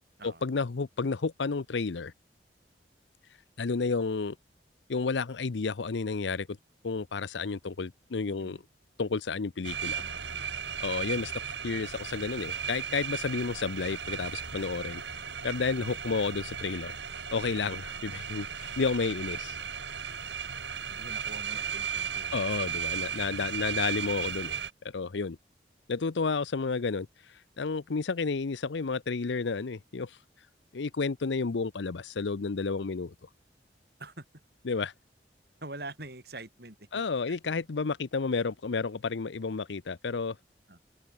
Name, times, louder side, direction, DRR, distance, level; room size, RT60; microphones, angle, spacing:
voice 1, 0.2-2.1 3.6-4.4 4.9-6.6 6.8-8.6 9.0-10.0 10.8-15.0 15.4-17.0 17.3-19.6 22.3-24.6 24.8-25.4 25.9-30.2 30.7-33.1 34.7-34.9 36.9-40.4, left 4 dB, 80° left, 0.6 m, -31 dB
sound 1, 9.6-24.7, right 7 dB, 75° right, 2.4 m, -36 dB
voice 2, 10.0-10.8 16.0-16.6 20.4-20.6 20.9-22.4 34.0-34.2 35.6-37.4 40.7-40.8, right 2 dB, 60° right, 6.3 m, -46 dB
head